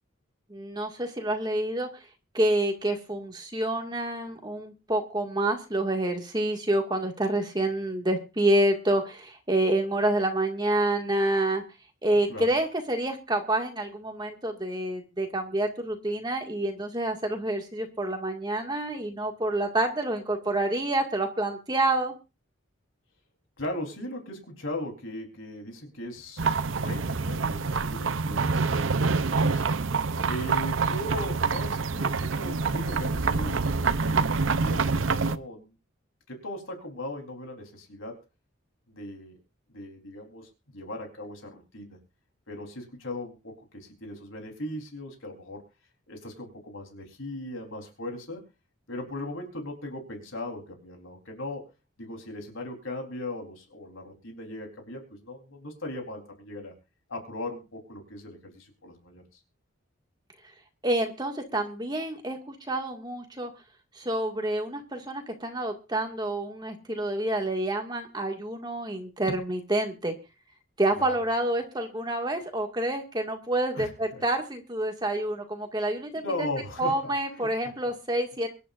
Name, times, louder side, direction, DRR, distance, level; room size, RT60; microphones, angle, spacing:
voice 1, 0.5-1.9 2.3-11.6 12.0-22.1 60.8-63.5 64.0-70.1 70.8-76.5 76.8-78.5, right 1 dB, 20° right, 3 dB, 2.1 m, -28 dB
voice 2, 23.6-29.6 30.2-35.7 36.3-38.2 38.9-39.4 39.7-42.0 42.5-45.6 46.1-48.4 48.9-51.7 52.0-56.7 57.1-59.2 69.3-69.4 70.9-71.2 73.7-74.2 76.2-77.5, left 1 dB, 80° left, 2 dB, 4.0 m, -38 dB
sound 1, 26.4-35.4, right 4 dB, 70° right, 0.7 m, -26 dB
24.0 x 11.0 x 2.6 m, 0.30 s
head